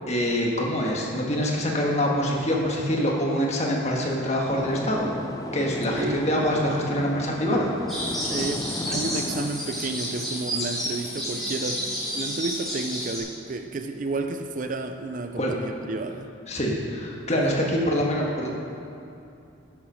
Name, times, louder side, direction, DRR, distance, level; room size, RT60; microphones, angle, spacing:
voice 1, 0.1-5.1 5.5-7.7 15.4-15.5 16.5-18.5, equal, 35° left, -1 dB, 1.5 m, -25 dB
sound 1, 4.5-9.5, left 1 dB, 20° left, 0.4 m, -35 dB
sound 2, 7.9-13.2, equal, ahead, 2.9 m, -31 dB
voice 2, 8.3-11.9 12.1-16.3, right 3 dB, 40° right, 6 dB, 0.5 m, -31 dB
11.0 x 7.3 x 6.2 m, 2.7 s
head